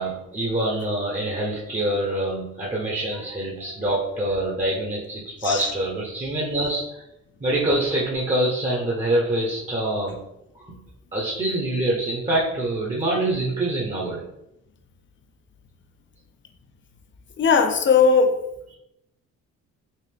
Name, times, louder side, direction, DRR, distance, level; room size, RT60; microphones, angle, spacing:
voice 1, 0.0-7.0 7.4-10.2 10.6-10.8 11.1-14.3, right 1 dB, 20° right, -4 dB, 0.8 m, -25 dB
voice 2, 17.4-18.3, left 5 dB, 40° left, 6 dB, 0.5 m, -18 dB
5.3 x 2.0 x 3.4 m, 0.86 s
cardioid pair, 90°, 30 cm